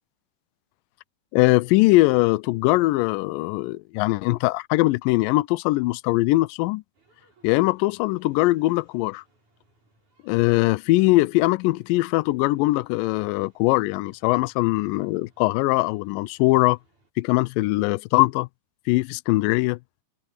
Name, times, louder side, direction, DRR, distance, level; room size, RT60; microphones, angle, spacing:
voice 1, 1.3-6.8 7.4-9.2 10.2-16.8 17.2-18.5 18.9-19.8, left 20 dB, 85° left, 2.0 m, -21 dB
sound 1, 6.9-17.1, right 2 dB, 50° right, 9.0 m, -64 dB
omnidirectional pair, 4.5 m